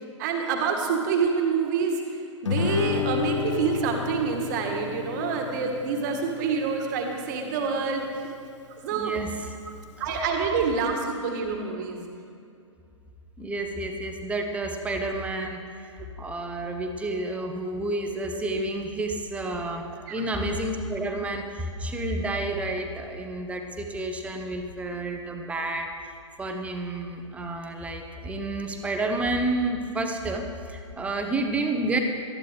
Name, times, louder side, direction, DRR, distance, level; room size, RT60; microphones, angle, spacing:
voice 1, 0.2-2.2 2.4-8.0 8.4-8.5 8.8-9.1 10.0-12.0 17.7-17.8 20.1-20.2, right 5 dB, 35° right, 3 dB, 1.6 m, -27 dB
Guitar, 2.4-7.5, left 6 dB, 70° left, 1.1 m, -31 dB
voice 2, 8.9-9.3 13.4-25.9 26.4-32.0, right 2 dB, 10° right, 4 dB, 1.0 m, -30 dB
18.5 x 13.5 x 3.4 m, 2.5 s
figure-of-eight pair, 115°, 16 cm